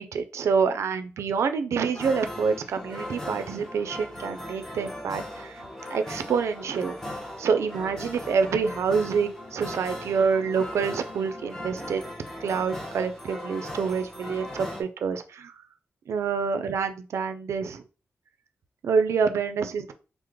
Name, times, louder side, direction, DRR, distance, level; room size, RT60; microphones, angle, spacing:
voice 1, 0.0-5.6 5.9-7.0 7.4-12.0 12.4-15.5 16.1-17.8 18.8-19.9, right 5 dB, 80° right, 8 dB, 0.4 m, -27 dB
sound 1, 1.9-14.8, left 1 dB, 10° left, 0.7 m, -38 dB
3.1 x 2.0 x 3.5 m, 0.35 s
wide cardioid pair, 150°, 5 cm